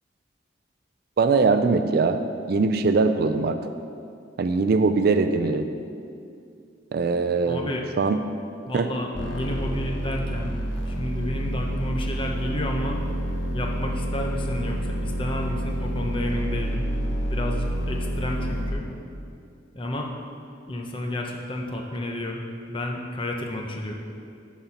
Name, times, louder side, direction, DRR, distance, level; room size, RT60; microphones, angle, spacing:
voice 1, 1.2-2.2 2.5-3.6 4.4-5.7 6.9-7.6 8.0-8.2 8.7-8.9, right 4 dB, 55° right, 8 dB, 0.4 m, -21 dB
voice 2, 7.5-7.9 8.7-10.6 10.8-13.0 13.5-16.9 17.3-18.8 19.7-20.1 20.7-22.4 22.7-23.9, left 1 dB, 25° left, 1 dB, 0.7 m, -31 dB
sound 1, 9.1-18.7, equal, 80° left, 1.0 m, -28 dB
9.0 x 4.3 x 5.8 m, 2.4 s
head